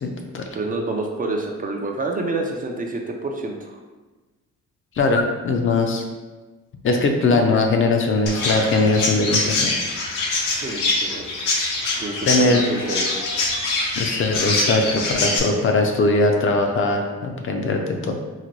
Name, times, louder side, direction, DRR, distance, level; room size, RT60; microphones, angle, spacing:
voice 1, 0.0-0.4 5.0-6.0 6.8-9.7 12.3-12.6 13.9-18.1, left 3 dB, 45° left, 3 dB, 0.5 m, -20 dB
voice 2, 0.5-3.8 5.9-6.0 10.6-11.2 12.0-13.1, right 2 dB, 30° right, 1 dB, 0.4 m, -28 dB
Chirp tweet, 8.3-15.4, left 2 dB, 85° left, 0.7 m, -24 dB
3.9 x 2.1 x 3.0 m, 1.2 s
cardioid pair, 90°, 30 cm